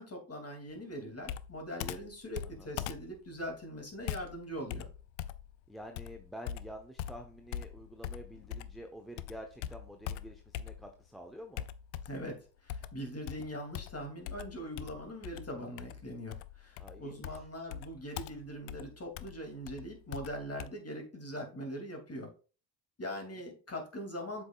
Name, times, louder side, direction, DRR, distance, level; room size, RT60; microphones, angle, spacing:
voice 1, 0.0-4.9 12.1-22.3 23.0-24.4, equal, 30° left, 3 dB, 2.9 m, -42 dB
Computer keyboard, 1.2-8.9 9.2-11.1 11.6-12.3 12.7-20.7, left 11 dB, 80° left, 0.6 m, -42 dB
voice 2, 5.7-11.7 16.8-17.4 23.3-23.4, equal, ahead, 4 dB, 1.1 m, -48 dB
7.7 x 5.9 x 2.5 m, 0.36 s
hypercardioid pair, 50°, 50 cm